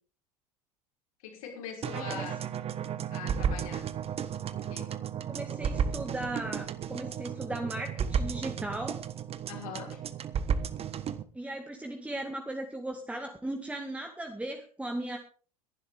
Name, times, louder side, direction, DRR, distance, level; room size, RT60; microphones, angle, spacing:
voice 1, 1.2-2.4 3.1-3.9 4.5-4.9 9.5-10.0, left 7 dB, 65° left, 1 dB, 5.8 m, -42 dB
sound 1, 1.8-11.2, right 7 dB, 30° right, 1.2 m, -33 dB
voice 2, 1.9-2.3 5.3-9.1 11.3-15.2, right 1 dB, 5° right, 4 dB, 2.0 m, -37 dB
22.0 x 11.5 x 3.5 m, 0.41 s
figure-of-eight pair, 75°, 20 cm